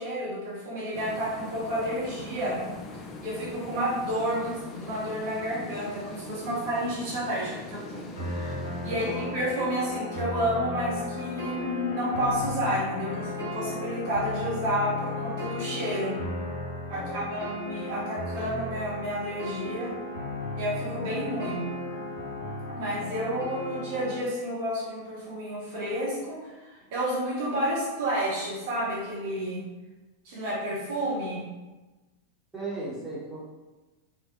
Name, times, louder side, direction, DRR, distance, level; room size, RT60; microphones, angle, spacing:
voice 1, 0.0-2.6 2.9-8.6 8.8-16.2 16.9-19.9 20.6-21.6 22.7-29.6 30.2-31.4, equal, 50° right, -6 dB, 0.6 m, -30 dB
sound 1, 0.9-11.5, left 2 dB, 30° left, 0.3 m, -42 dB
sound 2, 8.2-24.2, left 2 dB, 60° left, 1.0 m, -35 dB
voice 2, 8.8-9.3 16.9-17.5 32.5-33.4, right 2 dB, 5° right, -10 dB, 1.0 m, -37 dB
2.5 x 2.0 x 2.5 m, 1.2 s
figure-of-eight pair, 90°, 0 cm